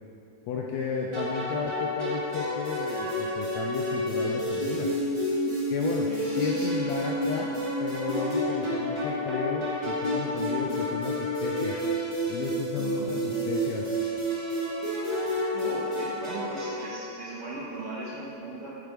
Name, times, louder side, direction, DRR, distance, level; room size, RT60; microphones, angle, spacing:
voice 1, 0.5-4.9 5.7-7.5 7.8-11.8 12.3-13.8, left 5 dB, 80° left, -1 dB, 1.6 m, -33 dB
sound 1, 1.1-17.1, equal, 25° right, 0.6 m, -29 dB
voice 2, 6.1-6.8 12.8-13.4 15.5-18.7, right 2 dB, 65° right, -6 dB, 1.6 m, -38 dB
8.3 x 4.8 x 4.6 m, 2.7 s
omnidirectional pair, 3.6 m